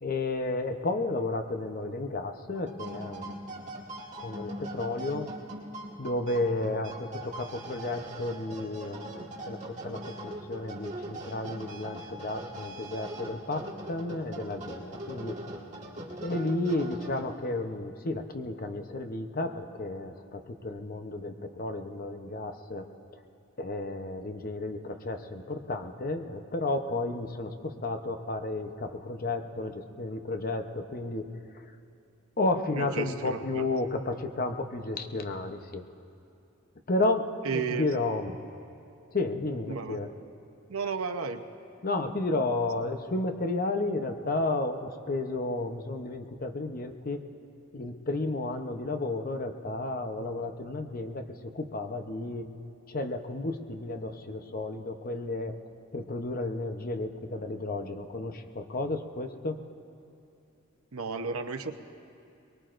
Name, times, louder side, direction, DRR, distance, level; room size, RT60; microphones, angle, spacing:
voice 1, 0.0-3.6 4.2-5.3 6.0-15.4 16.2-22.9 23.6-31.3 31.5-31.6 32.4-35.8 36.9-38.4 39.1-40.1 41.8-47.2 47.7-52.5 52.9-55.5 55.9-59.6, left 2 dB, 45° left, 6 dB, 0.8 m, -32 dB
sound 1, 2.5-17.5, right 1 dB, 35° right, 2.0 m, -41 dB
voice 2, 32.8-33.6 37.4-37.8 39.7-40.0 40.7-41.4 60.9-61.7, right 5 dB, 85° right, 7 dB, 0.8 m, -33 dB
23.0 x 22.0 x 2.6 m, 2.6 s
head